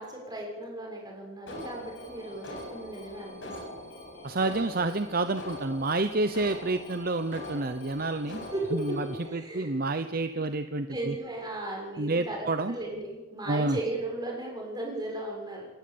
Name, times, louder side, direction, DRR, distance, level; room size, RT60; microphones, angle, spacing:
voice 1, 0.0-3.8 8.2-9.8 10.9-15.7, right 1 dB, 20° right, -1 dB, 6.6 m, -36 dB
Alarm, 1.5-9.3, left 1 dB, 70° left, 7.7 m, -43 dB
voice 2, 4.2-8.5 8.7-9.0 9.3-11.2 12.0-12.8 13.5-13.8, right 2 dB, 50° right, 9 dB, 0.9 m, -29 dB
29.0 x 13.0 x 8.7 m, 1.3 s
head